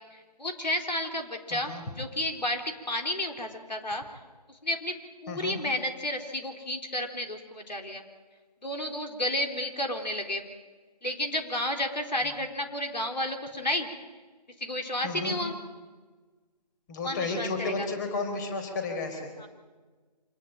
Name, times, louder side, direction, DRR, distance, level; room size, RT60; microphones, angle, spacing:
voice 1, 0.4-4.0 4.6-4.9 5.2-8.0 8.6-10.4 11.0-13.9 14.6-15.6 17.0-17.9 19.4-19.5, left 1 dB, 90° left, 3 dB, 4.0 m, -31 dB
voice 2, 1.5-1.8 5.3-5.6 15.0-15.4 16.9-19.2, left 3 dB, 25° left, 6 dB, 4.1 m, -32 dB
26.0 x 18.5 x 9.0 m, 1.3 s
figure-of-eight pair, 155°, 21 cm